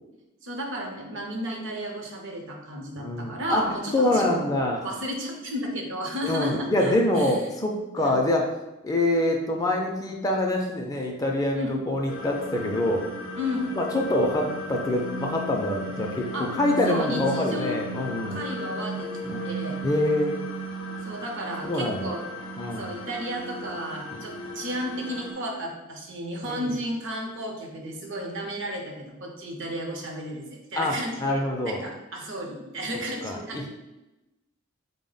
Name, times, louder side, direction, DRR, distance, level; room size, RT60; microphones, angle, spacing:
voice 1, 0.4-4.4 4.8-7.4 7.9-8.2 11.5-11.7 13.4-13.7 16.3-16.5 16.9-17.8 18.3-19.1 19.4-19.8 21.0-22.3 22.8-33.7, equal, 65° right, 1 dB, 0.7 m, -33 dB
voice 2, 3.0-4.8 6.2-8.5 8.8-13.0 13.7-18.4 19.2-19.4 19.8-20.5 21.6-22.1 22.6-22.9 24.1-24.2 26.4-26.7 30.7-31.8 33.2-33.7, left 1 dB, 20° left, 1 dB, 0.4 m, -25 dB
sound 1, 12.1-25.3, equal, 75° left, 0.5 m, -35 dB
3.9 x 2.1 x 3.8 m, 0.98 s
head